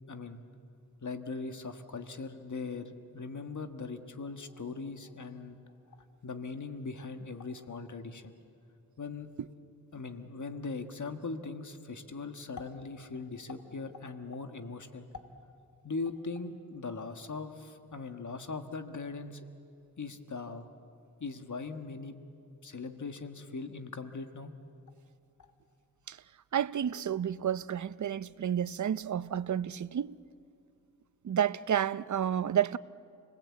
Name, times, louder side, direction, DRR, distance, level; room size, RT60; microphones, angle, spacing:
voice 1, 0.1-0.4 1.0-5.6 6.2-8.3 9.0-9.3 9.9-15.1 15.8-19.4 20.0-20.7 21.2-22.2 22.6-24.5, left 4 dB, 55° left, 1.5 m, -40 dB
voice 2, 26.5-30.2 31.2-32.8, right 9 dB, 55° right, 0.6 m, -30 dB
28.5 x 19.5 x 8.4 m
wide cardioid pair, 65°, 35 cm